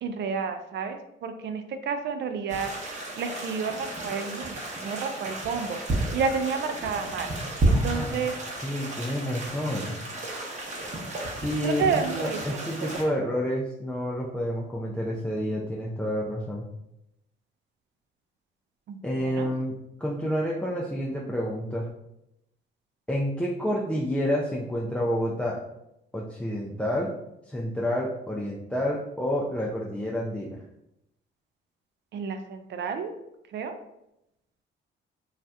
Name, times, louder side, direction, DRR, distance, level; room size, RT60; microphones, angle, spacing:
voice 1, 0.0-2.7 3.2-7.3 7.7-8.4 11.6-13.0 18.9-19.5 32.1-33.1 33.5-33.7, right 5 dB, 60° right, 7 dB, 0.4 m, -31 dB
sound 1, 2.5-13.0, right 2 dB, 35° right, 0.9 m, -32 dB
voice 2, 7.7-8.2 8.6-10.0 11.3-16.7 19.0-21.9 23.1-25.6 26.1-27.1 27.5-30.6, equal, 5° left, -3 dB, 0.4 m, -29 dB
2.7 x 2.4 x 3.2 m, 0.84 s
cardioid pair, 90°, 20 cm